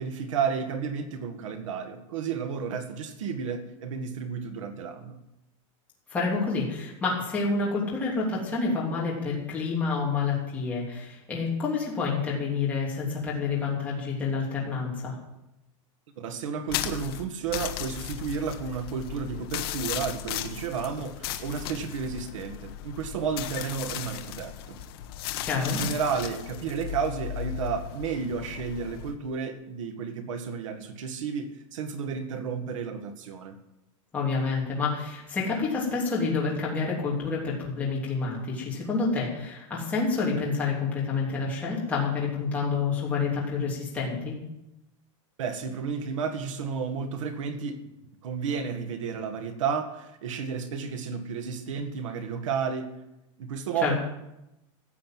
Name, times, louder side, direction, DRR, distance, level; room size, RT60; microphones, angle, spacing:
voice 1, 0.0-5.2 16.2-24.8 25.6-33.6 45.4-47.8 48.2-52.9 53.4-54.0, right 6 dB, 70° right, 8 dB, 2.0 m, -32 dB
voice 2, 6.1-15.2 25.4-25.8 34.1-44.4 53.8-53.9, left 4 dB, 10° left, -5 dB, 3.3 m, -28 dB
sound 1, 16.7-29.1, left 12 dB, 50° left, 1.2 m, -36 dB
15.5 x 7.8 x 7.7 m, 0.90 s
supercardioid pair, 175°, 17 cm